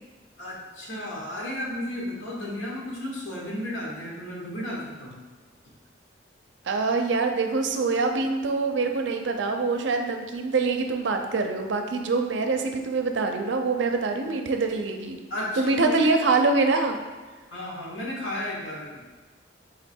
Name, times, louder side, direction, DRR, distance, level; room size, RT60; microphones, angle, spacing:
voice 1, 0.4-5.2 15.3-16.0 17.5-19.0, left 1 dB, 85° left, -3 dB, 1.2 m, -33 dB
voice 2, 6.7-15.2 15.6-17.0, right 3 dB, 70° right, 5 dB, 0.5 m, -24 dB
4.1 x 3.0 x 4.3 m, 1.3 s
head